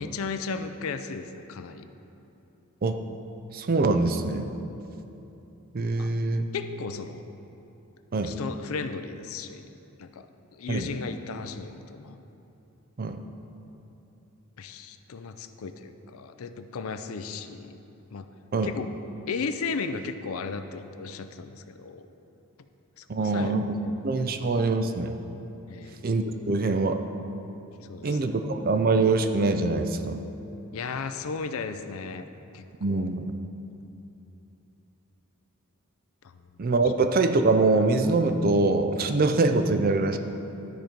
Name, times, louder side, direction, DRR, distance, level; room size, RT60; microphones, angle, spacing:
voice 1, 0.0-1.9 6.0-6.1 6.5-7.2 8.2-9.7 10.0-10.3 10.5-12.2 14.6-17.8 18.1-18.3 18.6-18.9 19.3-22.1 23.0-24.3 25.7-26.0 27.9-28.4 30.7-32.3 32.5-33.1 36.2-36.5, left 5 dB, 70° left, 9 dB, 0.5 m, -35 dB
voice 2, 3.5-4.5 5.7-6.5 8.1-8.4 10.7-10.9 13.0-13.2 18.5-18.7 23.1-23.7 24.0-25.2 26.0-27.0 28.0-30.2 32.8-33.2 36.6-40.2, right 3 dB, 40° right, 7 dB, 0.4 m, -24 dB
12.5 x 4.5 x 5.2 m, 2.9 s
head